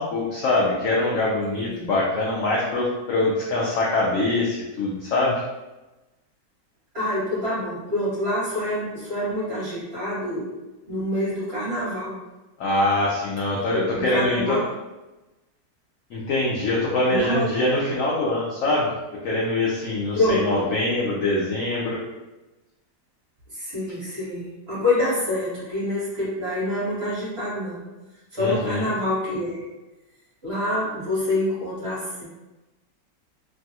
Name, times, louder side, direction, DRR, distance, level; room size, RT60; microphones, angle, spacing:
voice 1, 0.0-5.4 12.6-14.6 16.1-18.9 19.2-22.0 28.4-28.9, left 2 dB, 75° left, -5 dB, 0.7 m, -23 dB
voice 2, 6.9-10.5 10.9-12.2 13.7-14.7 17.1-17.5 20.1-20.7 23.5-27.8 28.3-29.6 30.4-32.3, left 1 dB, 40° right, -10 dB, 1.3 m, -26 dB
3.1 x 2.3 x 2.7 m, 1.1 s
omnidirectional pair, 1.9 m